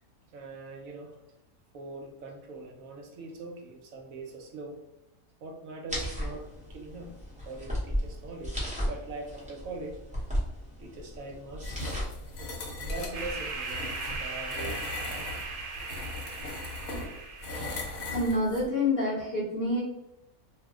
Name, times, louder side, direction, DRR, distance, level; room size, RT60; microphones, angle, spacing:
voice 1, 0.3-1.2 1.7-4.8 5.4-7.2 7.4-10.0 10.8-12.0 12.8-14.8 15.8-16.1, right 3 dB, 70° right, 1 dB, 0.9 m, -42 dB
sound 1, 5.9-13.6, equal, 10° right, 0.5 m, -36 dB
sound 2, 11.6-18.7, left 2 dB, 70° left, 1.0 m, -38 dB
sound 3, 13.1-17.9, right 4 dB, 50° right, 0.6 m, -38 dB
voice 2, 18.1-19.8, left 2 dB, 45° left, -7 dB, 0.7 m, -27 dB
2.6 x 2.0 x 3.4 m, 0.89 s
omnidirectional pair, 1.6 m